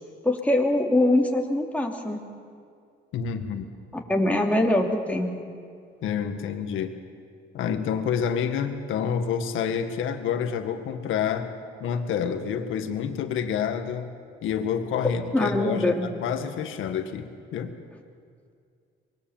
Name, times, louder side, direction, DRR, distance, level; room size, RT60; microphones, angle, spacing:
voice 1, 0.2-2.2 4.1-5.3 15.3-16.1, left 1 dB, 5° left, 0 dB, 3.0 m, -23 dB
voice 2, 3.1-3.7 6.0-7.0 7.5-11.5 11.8-14.1 14.4-17.7, left 7 dB, 85° left, 7 dB, 1.8 m, -28 dB
25.0 x 21.0 x 7.3 m, 2.3 s
cardioid pair, 90°, 20 cm